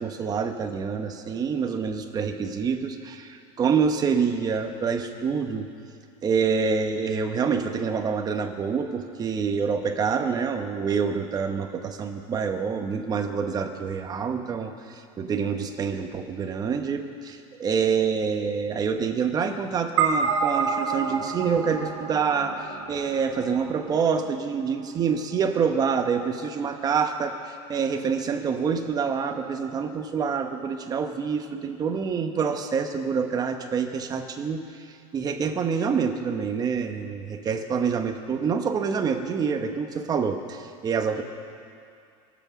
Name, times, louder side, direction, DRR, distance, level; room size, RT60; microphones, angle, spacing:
voice 1, 0.0-5.7 6.2-41.2, right 6 dB, 20° right, 5 dB, 1.1 m, -27 dB
sound 1, 20.0-24.5, right 5 dB, 75° right, 1.5 m, -28 dB
24.0 x 8.2 x 6.2 m, 2.4 s
supercardioid pair, 145°, 17 cm